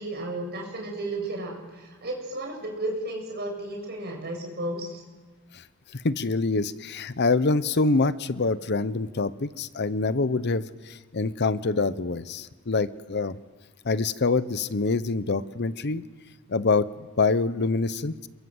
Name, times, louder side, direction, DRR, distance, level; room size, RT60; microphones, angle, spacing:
voice 1, 0.0-5.0, right 1 dB, 50° right, 1 dB, 7.6 m, -33 dB
voice 2, 5.9-13.4 13.8-16.0 16.5-16.9 17.2-18.3, left 3 dB, 55° left, 15 dB, 0.8 m, -25 dB
28.0 x 23.0 x 7.9 m, 1.3 s
head